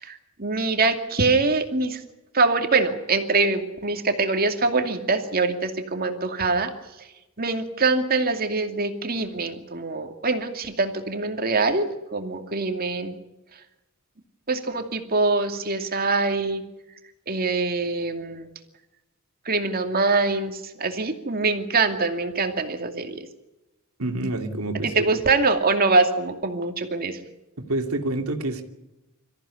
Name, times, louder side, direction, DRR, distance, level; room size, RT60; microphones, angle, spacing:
voice 1, 0.0-2.0 2.3-6.7 7.0-7.1 7.4-13.2 14.5-16.6 17.3-18.5 19.4-23.2 24.8-27.2, right 3 dB, 45° right, 2.5 m, -24 dB
voice 2, 24.0-25.2 27.6-28.6, right 2 dB, 85° right, 2.7 m, -28 dB
25.0 x 14.5 x 9.9 m
head